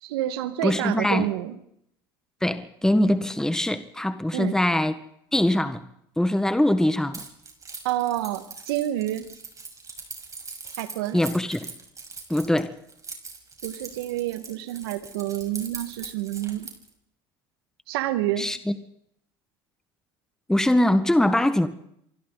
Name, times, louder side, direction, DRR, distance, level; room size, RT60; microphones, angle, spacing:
voice 1, 0.0-1.6 4.3-4.5 7.8-9.3 10.8-11.2 13.6-16.7 17.9-18.5, right 13 dB, 80° right, 11 dB, 1.9 m, -28 dB
voice 2, 0.6-1.3 2.4-4.9 5.3-5.8 6.2-7.2 11.1-11.7 12.3-12.7 18.4-18.7 20.5-21.7, left 1 dB, 5° left, 10 dB, 1.6 m, -22 dB
Keys jangling, 7.1-16.9, right 4 dB, 25° right, 6.1 m, -41 dB
29.0 x 24.0 x 4.1 m, 0.74 s
hypercardioid pair, 80°, 12 cm